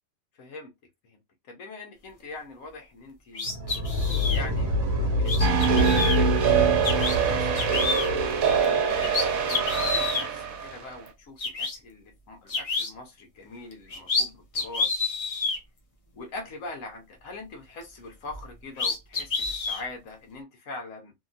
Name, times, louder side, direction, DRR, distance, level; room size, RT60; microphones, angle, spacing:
voice 1, 0.4-0.7 1.0-1.2 1.5-3.6 4.3-8.1 8.6-15.1 16.1-21.1, left 3 dB, 75° left, 1.3 m, -42 dB
sound 1, 3.3-4.4 5.3-6.2 6.8-7.2 7.6-8.1 8.6-8.7 9.0-10.3 11.1-11.2 11.4-11.8 12.5-12.9 13.7-14.3 14.5-15.6 18.3-18.4 18.8-19.8, left 4 dB, 45° left, 0.4 m, -28 dB
sound 2, 3.4-8.6, left 1 dB, 55° right, 1.0 m, -27 dB
sound 3, 5.4-10.7, right 7 dB, 90° right, 1.2 m, -24 dB
2.9 x 2.8 x 2.4 m
omnidirectional pair, 1.4 m